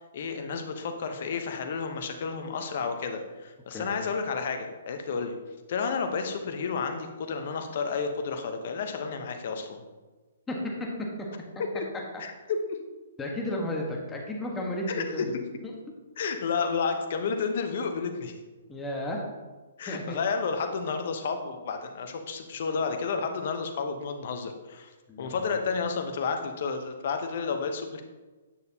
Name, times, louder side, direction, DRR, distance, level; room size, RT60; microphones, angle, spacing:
voice 1, 0.1-5.4 5.7-9.8 11.7-11.9 12.2-12.8 14.9-15.4 16.2-18.3 19.8-24.9 25.2-28.0, left 5 dB, 55° left, 6 dB, 0.9 m, -31 dB
voice 2, 10.5-11.1 13.2-15.3 15.6-15.8 18.7-19.2 19.9-20.2 25.1-25.6, left 1 dB, 10° left, -1 dB, 1.4 m, -33 dB
8.9 x 6.6 x 2.9 m, 1.3 s
hypercardioid pair, 130°, 0 cm